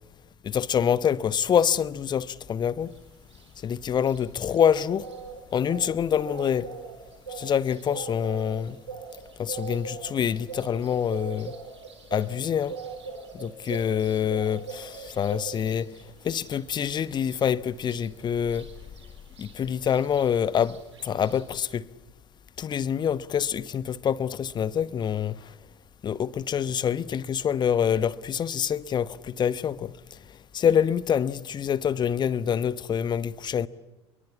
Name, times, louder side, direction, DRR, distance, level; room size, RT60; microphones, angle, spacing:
voice 1, 0.5-2.9 3.6-5.1 5.5-6.7 7.3-8.8 9.4-11.5 12.1-12.8 13.3-15.9 16.2-18.7 19.4-20.8 21.0-21.9 22.6-25.5 26.0-30.2 30.5-33.7, left 8 dB, 30° left, 1.1 m, -26 dB
sound 1, 2.9-21.7, right 5 dB, 75° right, 3.9 m, -42 dB
28.0 x 23.0 x 8.5 m
figure-of-eight pair, 70°, 15 cm